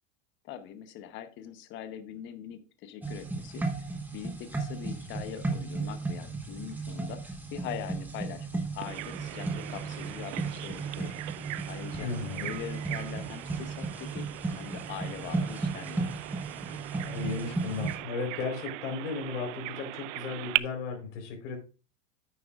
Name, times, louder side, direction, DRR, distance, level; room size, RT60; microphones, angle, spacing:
voice 1, 0.4-3.7 4.1-11.1 11.7-12.1 12.4-14.3 14.6-16.2, left 10 dB, 30° left, 9 dB, 0.9 m, -42 dB
sound 1, 3.0-18.0, right 3 dB, 5° right, 1.1 m, -35 dB
Bird vocalization bird call bird song, 8.8-20.6, right 18 dB, 75° right, 0.5 m, -39 dB
voice 2, 12.0-12.5 16.7-16.8 17.0-21.6, left 4 dB, 75° left, 2 dB, 4.0 m, -35 dB
9.9 x 9.3 x 2.4 m, 0.32 s
supercardioid pair, 155°, 37 cm